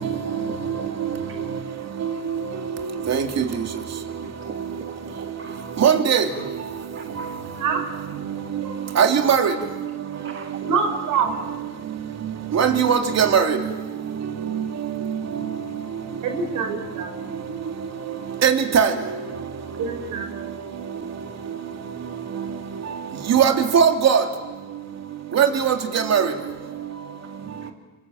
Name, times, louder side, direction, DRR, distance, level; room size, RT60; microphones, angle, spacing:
voice 1, 0.2-1.2 4.1-5.7 6.8-7.5 10.1-10.6 27.6-27.7, right 6 dB, 45° right, 5 dB, 1.5 m, -42 dB
voice 2, 3.1-3.4 5.8-6.2 8.9-9.5 12.5-13.6 14.5-14.6 18.4-18.9 23.3-24.2 25.3-26.3, right 7 dB, 60° right, 4 dB, 3.0 m, -18 dB
voice 3, 10.6-11.3 16.2-17.1 19.8-20.3, right 5 dB, 85° right, 5 dB, 4.3 m, -25 dB
27.0 x 23.5 x 7.8 m, 1.3 s
cardioid pair, 90°, 30 cm